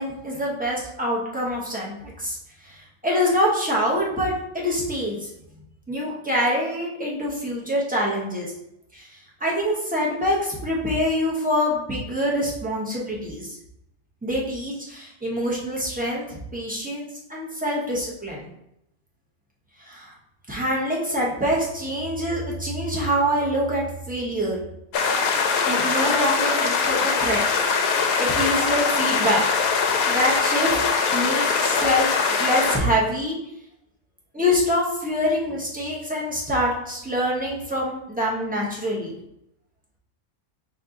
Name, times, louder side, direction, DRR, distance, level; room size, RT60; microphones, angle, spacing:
voice 1, 0.0-2.4 2.6-5.3 5.9-8.5 8.9-9.1 9.4-13.5 14.2-18.5 19.8-20.1 20.5-24.6 25.7-27.4 28.2-29.4 30.1-30.7 31.1-32.1 32.4-33.4 34.3-39.2, equal, 5° right, -5 dB, 0.9 m, -25 dB
sound 1, 24.9-32.8, left 5 dB, 80° left, 1.0 m, -22 dB
4.3 x 3.0 x 3.9 m, 0.80 s
omnidirectional pair, 1.5 m